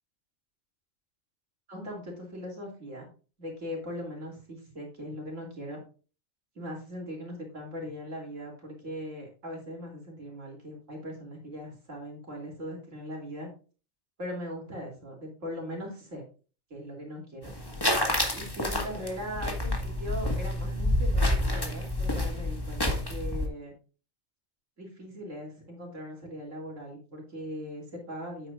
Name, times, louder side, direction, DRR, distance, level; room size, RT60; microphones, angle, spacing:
voice 1, 1.7-3.1 3.4-5.8 6.6-13.5 14.2-16.2 16.7-17.5 18.3-23.7 24.8-28.5, equal, 70° right, 0 dB, 3.6 m, -40 dB
sound 1, 17.4-23.5, left 1 dB, 20° left, 1.7 m, -28 dB
9.3 x 9.0 x 2.5 m, 0.36 s
omnidirectional pair, 1.4 m